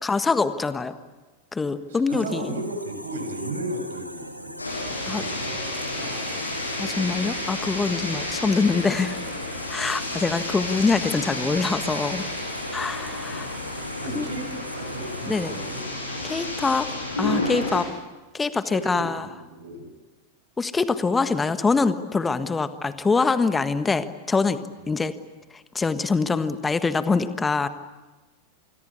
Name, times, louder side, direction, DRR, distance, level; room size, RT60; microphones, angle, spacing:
voice 1, 0.0-1.0 1.5-2.6 5.1-5.2 6.8-9.2 9.7-12.2 12.7-13.6 14.1-14.3 15.3-15.5 16.2-16.9 17.2-17.9 18.3-19.3 20.6-25.2 25.7-27.7, left 4 dB, 15° left, 12 dB, 1.5 m, -24 dB
voice 2, 1.9-4.5 5.0-6.4 8.1-8.2 9.6-9.9 14.0-15.9 18.6-19.9, right 2 dB, 60° right, 6 dB, 6.5 m, -35 dB
sound 1, 2.1-15.8, equal, 90° right, 2.6 m, -41 dB
sound 2, 4.6-17.9, left 2 dB, 80° left, 7.5 m, -31 dB
27.5 x 22.0 x 8.6 m, 1.2 s
figure-of-eight pair, 90°, 0 cm